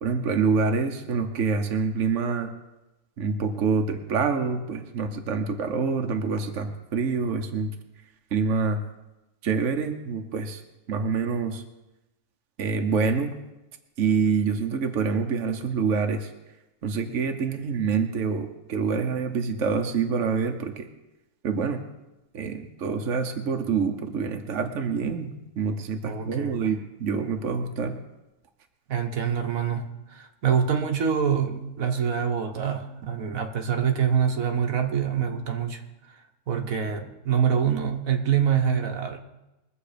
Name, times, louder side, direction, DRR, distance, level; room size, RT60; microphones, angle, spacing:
voice 1, 0.0-2.5 3.2-7.7 8.3-8.8 9.4-10.6 10.9-11.6 12.6-13.3 14.0-16.3 16.8-20.9 21.4-21.8 22.3-28.0, right 5 dB, 65° right, 4 dB, 1.3 m, -26 dB
voice 2, 26.0-26.7 28.9-35.8 36.5-39.2, right 7 dB, 80° right, 4 dB, 1.6 m, -25 dB
22.0 x 7.6 x 5.1 m, 0.98 s
omnidirectional pair, 1.4 m